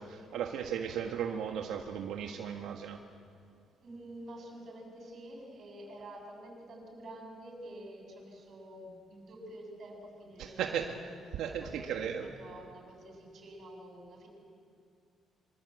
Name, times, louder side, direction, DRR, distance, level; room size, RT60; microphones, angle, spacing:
voice 1, 0.0-3.0 10.4-10.9 11.4-12.3, right 8 dB, 85° right, 3 dB, 1.6 m, -36 dB
voice 2, 3.8-14.3, right 1 dB, 45° right, 2 dB, 7.4 m, -48 dB
27.0 x 25.0 x 8.1 m, 2.4 s
cardioid pair, 150°, 0 cm